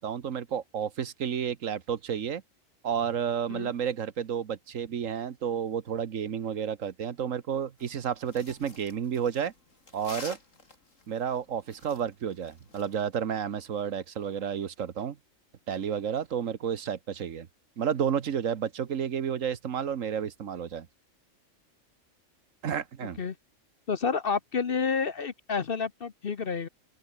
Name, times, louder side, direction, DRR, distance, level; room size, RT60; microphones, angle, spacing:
voice 1, 0.0-2.4 2.8-9.5 9.9-10.4 11.1-15.2 15.7-17.5 17.8-20.9 22.6-23.2, right 8 dB, 75° right, 1.5 m, -31 dB
sound 1, 7.8-12.9, left 3 dB, 70° left, 4.3 m, -48 dB
voice 2, 23.9-26.7, left 5 dB, 45° left, 1.1 m, -29 dB
open air
omnidirectional pair, 1.4 m